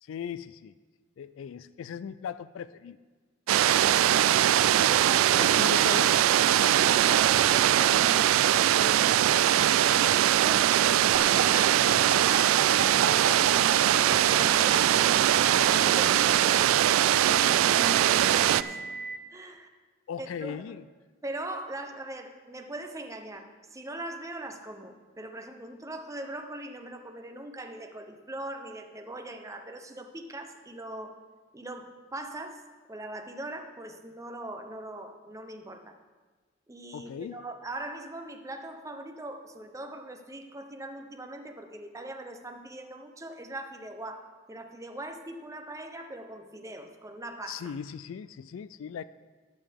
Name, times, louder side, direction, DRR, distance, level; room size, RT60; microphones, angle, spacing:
voice 1, 0.0-0.7 1.2-3.0 5.4-6.2 20.1-20.8 36.9-37.4 47.5-49.0, left 7 dB, 70° left, 15 dB, 0.3 m, -38 dB
sound 1, 3.5-18.6, right 11 dB, 85° right, 0.3 m, -22 dB
voice 2, 4.9-5.8 6.5-8.3 10.1-12.6 15.7-18.8 19.3-19.7 20.2-20.6 21.2-31.2 31.5-35.9 36.7-47.7, right 1 dB, 15° right, 5 dB, 0.8 m, -41 dB
sound 2, 6.2-18.7, right 1 dB, 65° right, 3.0 m, -44 dB
sound 3, 11.1-15.8 16.9-19.2, right 5 dB, 50° right, 0.7 m, -34 dB
18.5 x 6.9 x 3.6 m, 1.4 s
head